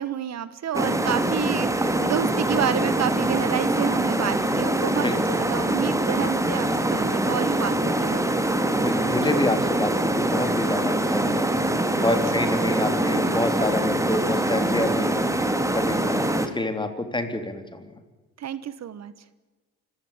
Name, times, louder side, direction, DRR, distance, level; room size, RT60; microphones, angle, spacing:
voice 1, 0.0-8.5 12.3-12.4 18.4-19.1, right 10 dB, 60° right, 15 dB, 1.3 m, -29 dB
sound 1, 0.7-16.5, right 1 dB, 10° right, 2.5 m, -24 dB
voice 2, 5.0-5.4 8.8-11.5 12.0-15.2 15.7-17.9, left 2 dB, 15° left, 8 dB, 3.3 m, -27 dB
25.5 x 15.5 x 8.9 m, 1.2 s
cardioid pair, 90°, 30 cm